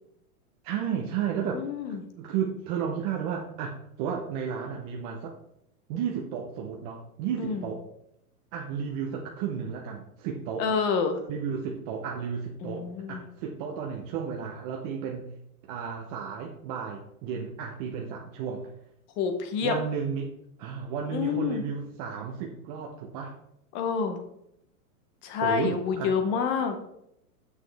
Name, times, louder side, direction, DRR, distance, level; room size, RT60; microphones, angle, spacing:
voice 1, 0.6-5.4 5.9-7.8 8.5-10.7 11.3-15.3 15.6-18.7 19.6-20.3 20.6-23.4 25.4-26.1, right 7 dB, 25° right, 0 dB, 0.5 m, -33 dB
voice 2, 1.5-2.0 7.4-7.6 10.6-11.2 12.6-13.2 19.2-19.7 21.1-21.7 23.7-24.2 25.2-26.8, left 6 dB, 25° left, 7 dB, 0.7 m, -28 dB
7.1 x 6.3 x 3.3 m, 0.78 s
supercardioid pair, 150°, 45 cm